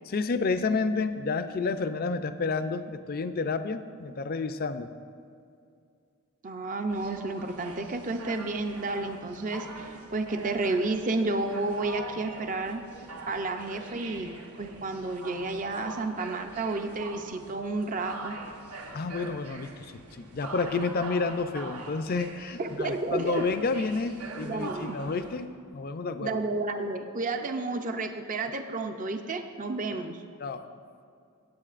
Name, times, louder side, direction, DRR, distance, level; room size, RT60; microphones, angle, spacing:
voice 1, 0.1-4.9 18.9-26.4 30.4-30.6, left 4 dB, 45° left, 10 dB, 0.4 m, -30 dB
voice 2, 6.4-12.8 13.3-14.3 14.6-18.3 22.6-23.4 24.4-25.0 26.2-30.2, right 3 dB, 35° right, 6 dB, 0.5 m, -31 dB
sound 1, 6.9-25.4, right 3 dB, 85° right, 1.0 m, -43 dB
17.5 x 8.6 x 2.5 m, 2.4 s
head